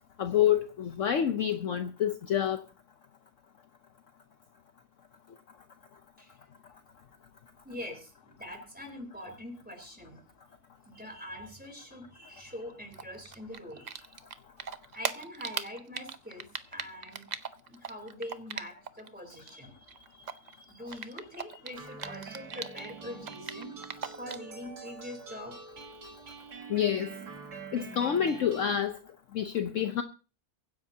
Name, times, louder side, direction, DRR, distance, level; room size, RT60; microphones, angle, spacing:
voice 1, 0.2-2.6 26.7-27.1 27.7-28.9 29.3-30.0, left 9 dB, 60° left, 1.1 m, -27 dB
voice 2, 7.6-10.2 10.8-14.1 14.9-17.3 17.7-23.7 24.2-25.6 26.0-26.2, left 1 dB, 5° right, 3.6 m, -44 dB
Typing, 12.9-14.3 14.6-19.1 19.3-22.9 23.2-24.5, right 6 dB, 55° right, 0.4 m, -38 dB
sound 1, 21.8-28.8, right 5 dB, 80° right, 2.3 m, -45 dB
23.0 x 10.5 x 2.8 m
omnidirectional pair, 1.6 m